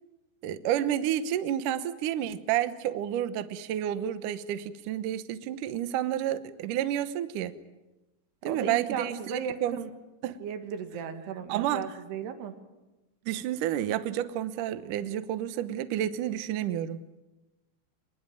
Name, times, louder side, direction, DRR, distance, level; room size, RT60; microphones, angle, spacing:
voice 1, 0.4-7.5 8.4-9.2 9.6-9.8 10.2-10.4 11.5-11.9 13.3-17.0, right 11 dB, 80° right, 12 dB, 1.8 m, -30 dB
voice 2, 8.4-9.9 10.4-12.5, right 7 dB, 65° right, 7 dB, 3.9 m, -35 dB
26.5 x 21.0 x 9.2 m, 1.1 s
omnidirectional pair, 5.3 m